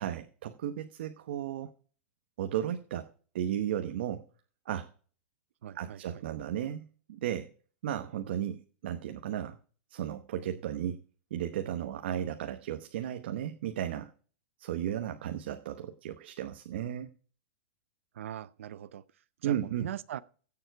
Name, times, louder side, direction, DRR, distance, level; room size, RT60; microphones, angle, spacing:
voice 1, 0.0-1.7 2.4-3.1 3.3-4.2 4.7-4.9 5.7-7.5 7.8-9.6 9.9-11.0 11.3-14.1 14.6-17.1 19.4-19.9, right 10 dB, 55° right, 1.0 m, -34 dB
voice 2, 5.6-6.0 18.1-19.0 19.4-20.2, right 11 dB, 85° right, 0.6 m, -40 dB
16.0 x 7.1 x 4.7 m
supercardioid pair, 180°, 7 cm